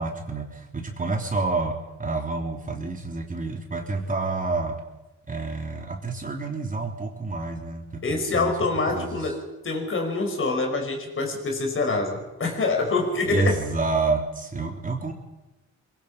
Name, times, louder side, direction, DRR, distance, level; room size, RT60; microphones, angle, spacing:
voice 1, 0.0-4.8 5.3-8.6 8.9-9.3 13.3-15.1, right 3 dB, 25° right, 2 dB, 3.5 m, -29 dB
voice 2, 8.0-13.6, left 3 dB, 45° left, 3 dB, 5.8 m, -26 dB
23.0 x 22.0 x 5.7 m, 1.0 s
cardioid pair, 90°, 30 cm